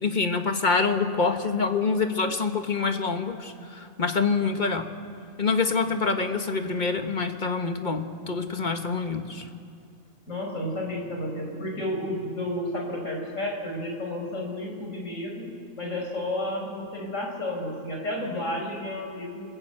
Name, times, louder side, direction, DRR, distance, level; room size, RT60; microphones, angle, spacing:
voice 1, 0.0-4.9 5.4-9.5, left 4 dB, 35° left, 6 dB, 1.6 m, -26 dB
voice 2, 10.3-19.4, left 1 dB, 60° left, 1 dB, 5.5 m, -32 dB
27.5 x 21.0 x 9.0 m, 2.3 s
omnidirectional pair, 1.5 m